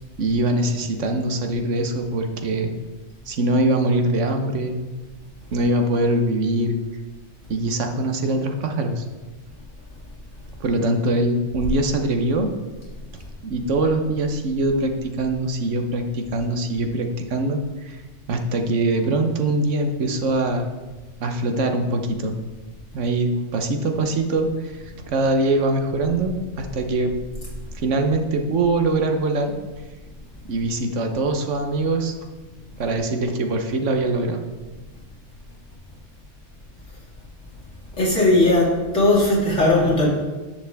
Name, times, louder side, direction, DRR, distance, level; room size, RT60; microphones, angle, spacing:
voice 1, 0.2-2.7 3.3-4.8 5.5-6.8 7.5-9.0 10.6-12.5 13.4-18.0 18.3-20.7 21.2-22.4 22.9-27.1 27.7-29.5 30.5-32.1 32.8-34.4, right 2 dB, 80° right, 5 dB, 1.2 m, -23 dB
voice 2, 38.0-40.1, left 2 dB, 85° left, -5 dB, 2.7 m, -18 dB
10.0 x 6.9 x 3.4 m, 1.3 s
omnidirectional pair, 1.2 m